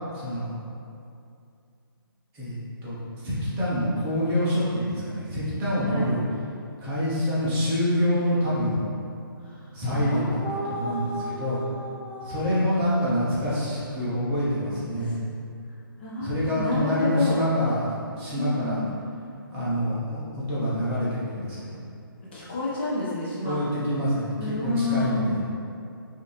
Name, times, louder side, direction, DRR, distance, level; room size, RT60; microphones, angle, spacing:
voice 1, 0.2-0.5 2.3-2.6 2.8-6.2 6.8-8.8 9.7-11.6 12.2-15.2 16.2-17.9 18.2-18.8 19.5-21.7 23.4-25.4, equal, 15° right, -10 dB, 0.9 m, -26 dB
voice 2, 5.8-6.1 9.5-9.6 9.8-12.7 15.1-15.2 16.0-17.4 18.4-18.9 22.3-23.6 24.3-25.4, left 2 dB, 25° left, -7 dB, 0.6 m, -30 dB
5.1 x 2.7 x 3.3 m, 2.5 s
hypercardioid pair, 160°, 13 cm